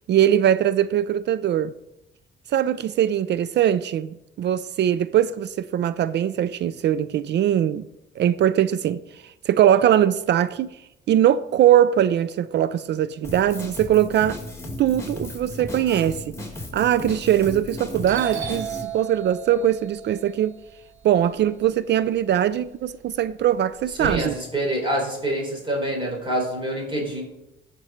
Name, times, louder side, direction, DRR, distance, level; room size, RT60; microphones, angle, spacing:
voice 1, 0.1-1.7 2.5-7.9 8.2-10.7 11.1-14.4 14.8-16.3 16.7-20.6 21.0-24.3, right 10 dB, 60° right, 0.4 m, -21 dB
Drum kit, 13.2-18.8, left 1 dB, 15° left, 2.3 m, -35 dB
Doorbell, 17.7-17.8 18.0-22.2 22.6-24.1, right 8 dB, 80° right, 2.1 m, -36 dB
voice 2, 24.0-27.2, right 1 dB, 25° right, 4.0 m, -26 dB
13.5 x 5.2 x 4.4 m
cardioid pair, 90°, 20 cm